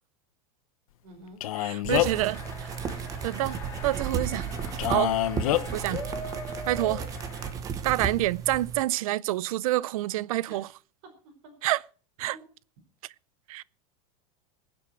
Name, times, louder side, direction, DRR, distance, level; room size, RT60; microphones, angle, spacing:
voice 1, 1.0-1.4 1.9-2.3 10.5-10.6 11.2-11.8 12.3-12.4, right 2 dB, 50° right, 5.1 m, -49 dB
Male speech man speaking, 1.4-2.3 4.8-5.6, left 14 dB, 80° left, 1.0 m, -26 dB
voice 2, 1.6-2.4 3.2-5.2 5.7-6.0 6.7-7.1 7.8-10.7 11.6-11.8 12.2-12.4 13.5-13.6, right 16 dB, 80° right, 0.5 m, -27 dB
sound 1, 1.8-8.8, right 7 dB, 20° right, 1.0 m, -34 dB
sound 2, 2.0-7.5, left 3 dB, 15° left, 2.8 m, -41 dB
21.5 x 7.9 x 4.5 m
supercardioid pair, 175°, 18 cm